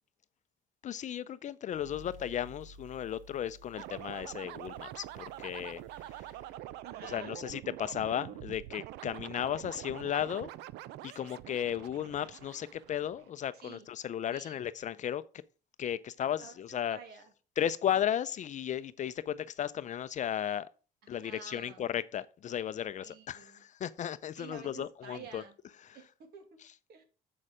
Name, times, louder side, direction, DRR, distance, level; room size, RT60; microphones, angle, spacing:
voice 1, 0.8-6.2 7.0-10.5 11.0-15.2 15.8-17.0 17.6-20.7 21.1-25.4 25.8-26.0, left 10 dB, 45° left, 0.5 m, -35 dB
sound 1, 1.7-9.0, equal, 50° right, 3.1 m, -56 dB
sound 2, 3.8-13.3, right 14 dB, 90° right, 0.5 m, -45 dB
voice 2, 6.8-7.4 13.5-13.9 14.3-14.7 16.4-17.3 21.2-21.9 23.0-23.6 24.4-25.5 25.9-26.6 26.9-27.0, right 6 dB, 70° right, 2.5 m, -50 dB
7.4 x 6.6 x 4.9 m
cardioid pair, 110°, 17 cm